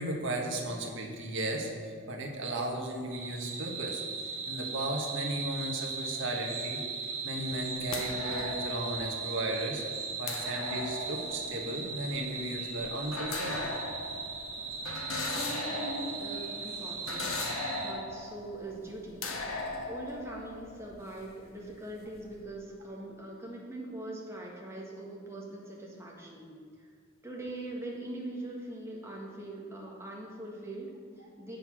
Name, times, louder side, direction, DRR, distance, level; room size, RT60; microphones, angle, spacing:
voice 1, 0.0-4.0 4.5-6.8 7.2-9.8 10.2-13.7, right 1 dB, 60° right, 1 dB, 1.4 m, -35 dB
sound 1, 3.1-17.9, right 5 dB, 75° right, 1.8 m, -38 dB
sound 2, 7.3-21.5 21.8-22.3, left 3 dB, 70° left, 1.2 m, -39 dB
voice 2, 15.3-17.3 17.8-19.2 19.9-26.5 26.8-26.9 27.2-31.6, right 1 dB, 10° right, -3 dB, 1.6 m, -42 dB
7.9 x 6.7 x 6.1 m, 2.1 s
head